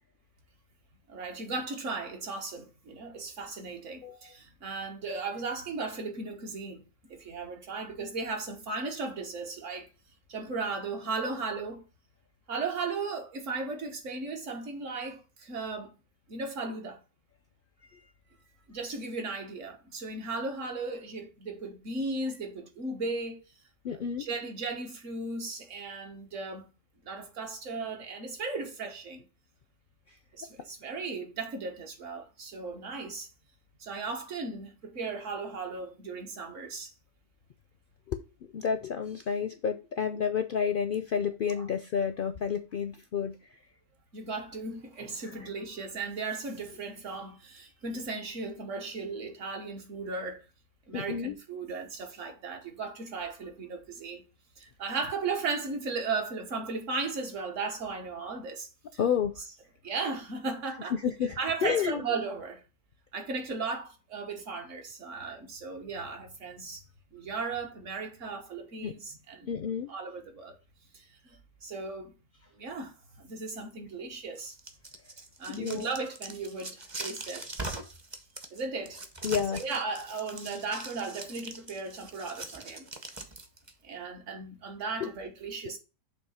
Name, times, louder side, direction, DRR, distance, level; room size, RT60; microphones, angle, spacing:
voice 1, 1.1-6.8 7.1-9.9 10.3-11.8 12.5-15.9 16.3-17.0 18.7-23.4 23.9-26.7 27.0-29.3 30.3-33.3 33.8-36.9 41.6-41.7 44.1-50.5 50.9-54.2 54.6-58.7 59.8-60.9 61.4-62.6 63.1-66.8 67.1-69.5 69.9-70.6 70.9-71.4 71.6-72.1 72.5-74.5 75.4-77.5 78.5-79.0 79.5-82.9 83.8-85.8, right 4 dB, 65° right, 1.5 m, -36 dB
voice 2, 4.0-4.3 17.9-18.0 23.8-24.3 30.1-30.2 38.1-38.2 38.5-43.4 45.4-45.5 50.9-51.3 59.0-59.3 60.9-62.0 68.8-68.9 69.5-69.9 75.6-75.9 79.2-79.6 85.0-85.1, left 7 dB, 65° left, 0.5 m, -30 dB
sound 1, 74.4-83.7, right 2 dB, 25° right, 0.6 m, -42 dB
6.7 x 2.8 x 5.6 m
omnidirectional pair, 1.4 m